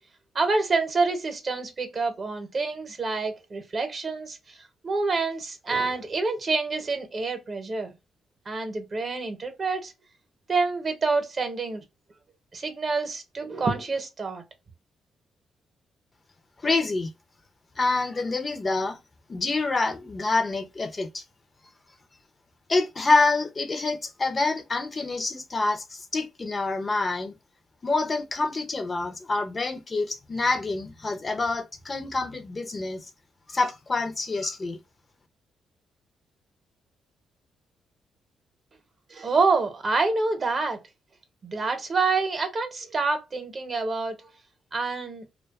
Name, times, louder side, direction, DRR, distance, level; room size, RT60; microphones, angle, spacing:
voice 1, 0.3-4.6 4.8-7.9 8.5-9.9 10.5-11.8 12.5-14.4 39.1-40.8 41.4-44.2 44.7-45.2, right 4 dB, 45° right, 0.8 m, -27 dB
voice 2, 16.6-17.1 17.8-19.0 19.3-21.2 22.7-27.3 27.8-33.1 33.5-34.8, left 3 dB, 35° left, 0.5 m, -27 dB
2.4 x 2.2 x 2.3 m
supercardioid pair, 65°, 0 cm